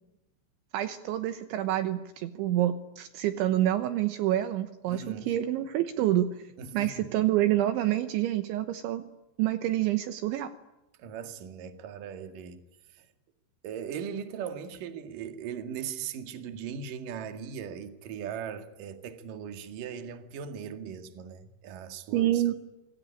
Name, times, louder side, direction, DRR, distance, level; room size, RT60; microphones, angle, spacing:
voice 1, 0.7-6.3 6.7-9.1 9.4-10.5 22.1-22.5, right 13 dB, 75° right, 3.2 m, -27 dB
voice 2, 4.9-5.3 6.6-7.1 11.0-12.6 12.9-13.1 13.6-22.5, right 7 dB, 55° right, 3.0 m, -39 dB
27.5 x 21.5 x 9.9 m
omnidirectional pair, 5.8 m